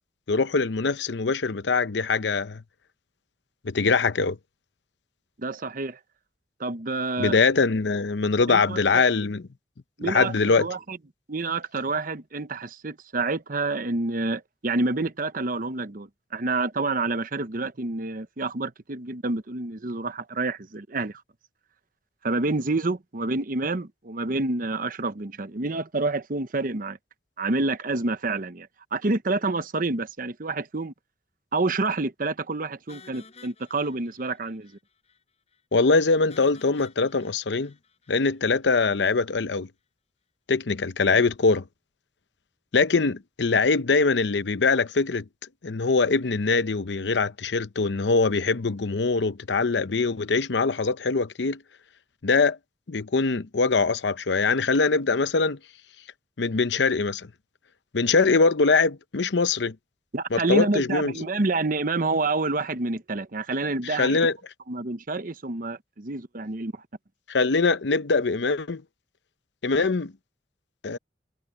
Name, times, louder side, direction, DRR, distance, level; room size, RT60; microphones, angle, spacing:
voice 1, 0.3-2.6 3.6-4.4 7.2-9.4 10.0-10.7 35.7-37.7 38.1-39.7 40.5-41.6 42.7-45.2 45.6-51.6 52.2-52.6 52.9-55.6 56.4-57.3 57.9-59.8 60.3-61.3 64.0-64.4 67.3-68.8 69.6-70.1 70.8-71.0, left 4 dB, 85° left, 0.7 m, -23 dB
voice 2, 5.4-6.0 6.6-7.4 8.5-9.0 10.0-11.0 11.3-21.2 22.2-27.0 27.4-30.9 31.5-34.7 60.1-64.2 64.7-66.8, right 3 dB, 50° right, 0.9 m, -28 dB
sound 1, 32.9-34.8 35.1-35.2 35.5-35.6 36.3-38.6, left 4 dB, 40° left, 5.1 m, -52 dB
head